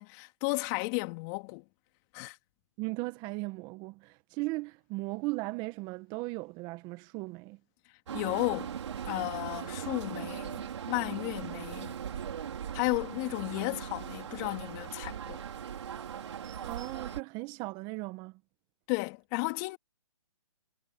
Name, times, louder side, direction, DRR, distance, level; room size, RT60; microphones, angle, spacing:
voice 1, 0.0-1.6 2.1-2.4 8.1-8.7 9.1-12.0 12.7-15.4 18.9-19.8, left 31 dB, 30° left, 3.0 m, -33 dB
voice 2, 2.8-7.6 16.6-18.3, right 24 dB, 25° right, 1.6 m, -37 dB
sound 1, 8.1-17.2, right 8 dB, 60° right, 5.4 m, -39 dB
hypercardioid pair, 140°, 17 cm